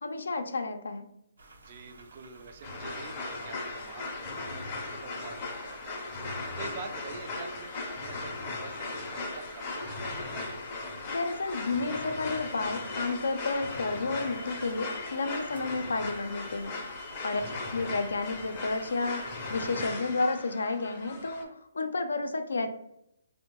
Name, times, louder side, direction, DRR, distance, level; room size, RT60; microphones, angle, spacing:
voice 1, 0.0-1.1 11.1-16.8 17.2-17.4 17.7-22.7, left 3 dB, 85° left, 8 dB, 0.4 m, -31 dB
sound 1, 1.4-19.9, right 2 dB, 85° right, 0.7 m, -54 dB
voice 2, 1.6-10.5 17.5-17.6, right 4 dB, 35° right, 6 dB, 0.3 m, -46 dB
sound 2, 2.6-21.4, left 3 dB, 25° left, 0.5 m, -38 dB
3.6 x 2.1 x 2.8 m, 0.79 s
hypercardioid pair, 165°, 0 cm